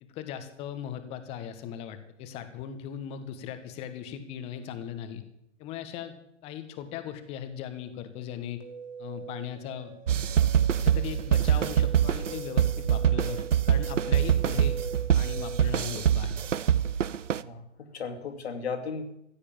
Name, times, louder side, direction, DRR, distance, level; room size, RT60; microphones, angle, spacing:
voice 1, 0.0-5.2 5.6-6.2 6.4-8.6 9.0-9.9 10.8-14.8 15.1-16.4, left 9 dB, 15° left, 10 dB, 1.2 m, -38 dB
sound 1, 8.6-15.8, right 5 dB, 25° right, 2.4 m, -42 dB
sound 2, 10.1-17.4, right 9 dB, 75° right, 0.8 m, -24 dB
voice 2, 17.4-19.2, left 5 dB, 55° left, 8 dB, 2.5 m, -36 dB
15.5 x 8.6 x 8.7 m, 0.78 s
hypercardioid pair, 145°, 37 cm